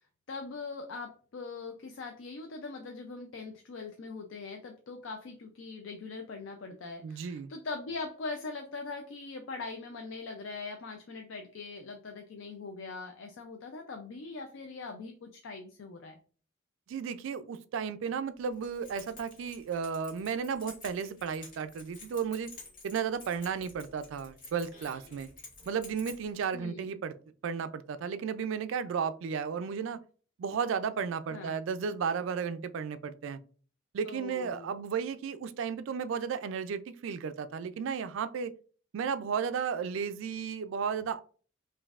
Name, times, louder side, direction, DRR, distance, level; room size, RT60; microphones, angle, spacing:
voice 1, 0.3-16.2 26.5-26.9 31.3-31.6 34.1-34.8, left 3 dB, 60° left, 4 dB, 0.4 m, -41 dB
voice 2, 7.0-7.5 16.9-22.5 22.8-25.3 25.7-27.1 27.4-30.0 30.4-33.4 33.9-38.5 38.9-41.2, right 6 dB, 65° right, 12 dB, 0.3 m, -34 dB
Keys jangling, 18.5-26.5, left 3 dB, 45° left, 1.5 m, -51 dB
5.1 x 2.6 x 2.4 m, 0.42 s
head